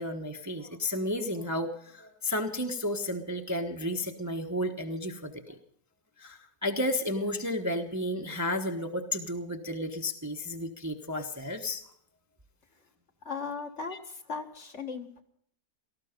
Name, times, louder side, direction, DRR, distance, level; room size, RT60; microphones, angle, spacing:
voice 1, 0.0-5.6 6.2-11.8 13.9-14.0, left 1 dB, 15° right, 4 dB, 1.0 m, -32 dB
voice 2, 13.2-15.2, left 4 dB, 50° left, 4 dB, 1.9 m, -37 dB
18.0 x 14.0 x 5.2 m, 0.65 s
omnidirectional pair, 1.6 m